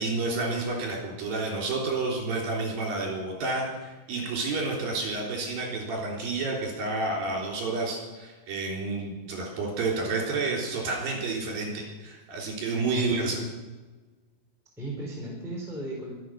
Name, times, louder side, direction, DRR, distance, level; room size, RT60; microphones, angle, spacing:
voice 1, 0.0-13.4, right 3 dB, 55° right, -2 dB, 5.2 m, -30 dB
voice 2, 12.9-13.5 14.8-16.1, equal, ahead, -3 dB, 2.8 m, -36 dB
24.0 x 8.2 x 6.4 m, 1.3 s
omnidirectional pair, 5.2 m